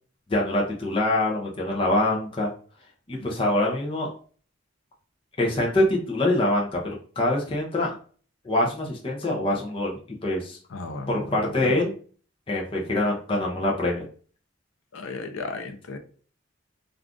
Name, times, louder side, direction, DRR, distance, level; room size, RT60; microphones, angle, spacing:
voice 1, 0.3-2.5 3.1-4.1 5.4-7.9 8.4-10.6 11.1-11.9 12.5-14.0, left 1 dB, 25° left, -2 dB, 0.5 m, -24 dB
voice 2, 10.7-11.3 11.6-11.8 14.9-16.0, left 3 dB, 75° left, 6 dB, 0.5 m, -35 dB
2.4 x 2.3 x 3.6 m, 0.43 s
head